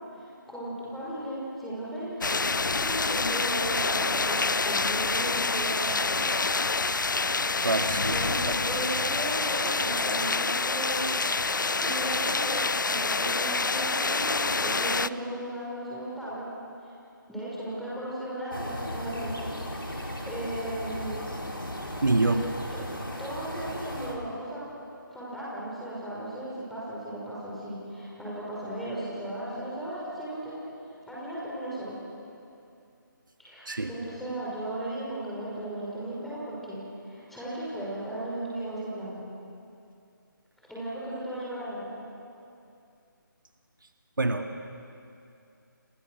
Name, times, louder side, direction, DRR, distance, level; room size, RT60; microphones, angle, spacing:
voice 1, 0.1-2.2 2.5-6.3 7.6-11.1 11.8-16.5 16.8-16.9 17.3-19.5 19.8-21.2 23.2-24.7 25.1-30.5 31.1-32.0 33.4-39.1 40.6-41.9, right 1 dB, ahead, -8 dB, 5.8 m, -36 dB
sound 1, 2.2-15.1, left 4 dB, 65° left, 0.7 m, -27 dB
voice 2, 7.6-8.5 22.0-22.5 33.7-33.9 44.2-44.6, right 2 dB, 65° right, 5 dB, 2.1 m, -26 dB
sound 2, 18.5-24.2, equal, 85° left, 4.8 m, -36 dB
29.0 x 28.0 x 6.6 m, 2.6 s
figure-of-eight pair, 150°, 11 cm